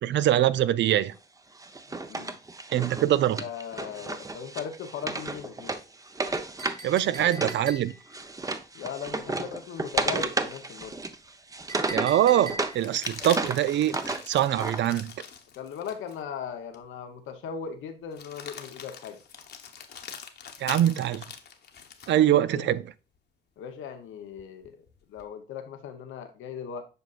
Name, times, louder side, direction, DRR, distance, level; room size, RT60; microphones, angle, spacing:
voice 1, 0.0-1.1 2.7-3.4 6.8-7.9 11.9-15.1 20.6-21.2 22.1-22.8, right 12 dB, 65° right, 0.5 m, -23 dB
Wood, 1.6-7.6 7.9-12.8 13.1-14.8, right 3 dB, 15° right, 0.7 m, -33 dB
voice 2, 1.9-2.4 3.4-5.8 8.7-11.0 15.6-19.2 22.1-22.8 23.6-24.8 25.1-26.8, left 7 dB, 80° left, 0.8 m, -38 dB
Chink clink, 6.6-8.2 11.7-13.0, right 3 dB, 40° right, 2.6 m, -41 dB
sound 1, 11.2-11.3 12.7-16.2 16.7-16.8 18.1-22.2 24.4-25.3, left 7 dB, 55° left, 1.1 m, -43 dB
7.9 x 5.3 x 2.4 m
cardioid pair, 90°, 20 cm